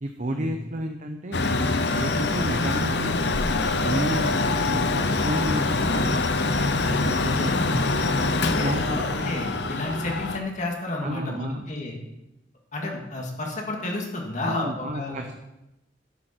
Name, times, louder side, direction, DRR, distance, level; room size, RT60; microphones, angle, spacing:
voice 1, 0.0-3.2 3.8-6.3 6.9-8.0 8.6-9.3 11.0-11.7 14.4-15.4, right 1 dB, 40° right, 4 dB, 0.8 m, -32 dB
Mechanical fan, 1.3-10.4, left 3 dB, 65° left, 0.8 m, -24 dB
voice 2, 7.2-7.8 8.4-12.0 12.7-15.4, left 2 dB, 40° left, 0 dB, 2.1 m, -31 dB
12.0 x 11.0 x 4.5 m, 0.94 s
head